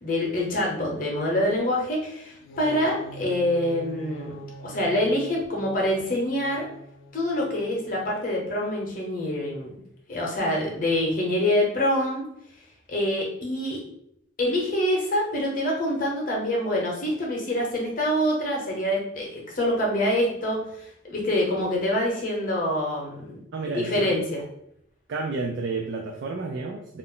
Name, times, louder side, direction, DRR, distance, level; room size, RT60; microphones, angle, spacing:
voice 1, 0.0-6.7 7.1-9.8 10.1-12.2 12.9-13.8 14.4-20.6 21.0-24.4, left 1 dB, 45° left, -2 dB, 0.7 m, -26 dB
sound 1, 2.3-8.3, right 2 dB, 80° left, 0.3 m, -44 dB
voice 2, 23.5-24.2 25.1-27.0, right 3 dB, 65° right, 1 dB, 0.3 m, -31 dB
2.4 x 2.0 x 3.6 m, 0.74 s
head